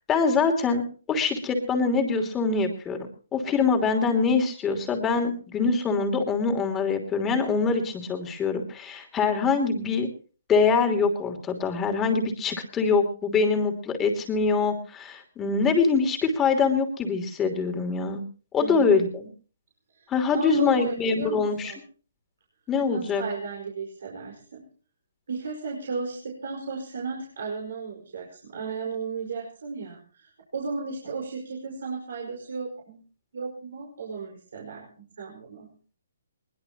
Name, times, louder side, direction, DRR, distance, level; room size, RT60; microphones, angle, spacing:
voice 1, 0.1-0.8 1.1-3.0 3.3-10.1 10.5-18.2 18.5-19.3 20.1-21.7 22.7-23.2, left 4 dB, 15° left, 4 dB, 3.0 m, -24 dB
voice 2, 18.6-18.9 19.9-21.8 22.9-24.6 25.3-33.0 33.3-34.9 35.2-35.7, right 4 dB, 70° right, -1 dB, 5.1 m, -34 dB
22.0 x 20.0 x 3.0 m, 0.40 s
hypercardioid pair, 155°, 0 cm